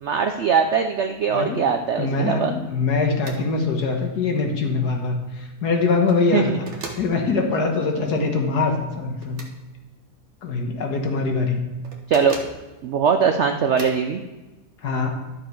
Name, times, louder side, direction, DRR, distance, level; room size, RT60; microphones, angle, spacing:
voice 1, 0.0-2.5 6.3-6.6 12.1-12.4 12.8-14.2, right 6 dB, 70° right, 6 dB, 0.6 m, -21 dB
voice 2, 1.3-1.6 2.0-6.7 7.0-9.4 10.4-11.6 14.8-15.1, left 4 dB, 70° left, 3 dB, 1.8 m, -23 dB
sound 1, 3.2-3.4 3.8-3.9 5.8-6.2 6.7-7.1 9.2-9.5 11.8-12.6 13.8-14.0, right 3 dB, 45° right, 1.3 m, -37 dB
11.5 x 6.7 x 4.5 m, 1.1 s
omnidirectional pair, 1.8 m